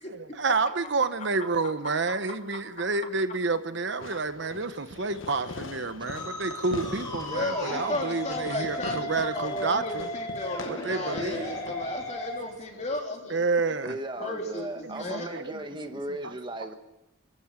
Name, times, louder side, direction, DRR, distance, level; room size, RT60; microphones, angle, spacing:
voice 1, 0.1-10.1 10.6-11.7 12.8-12.9 13.3-14.0 14.8-15.6 15.9-16.3, right 4 dB, 60° right, 1.0 m, -29 dB
Fireworks, 4.0-13.0, left 3 dB, 75° left, 1.1 m, -42 dB
Musical instrument, 6.0-12.4, left 1 dB, 20° left, 4.4 m, -36 dB
voice 2, 7.3-13.4 14.2-14.7 15.0-15.3, left 1 dB, 35° left, 3.3 m, -34 dB
voice 3, 13.8-16.7, right 1 dB, 25° right, 1.3 m, -36 dB
26.5 x 14.0 x 8.8 m
head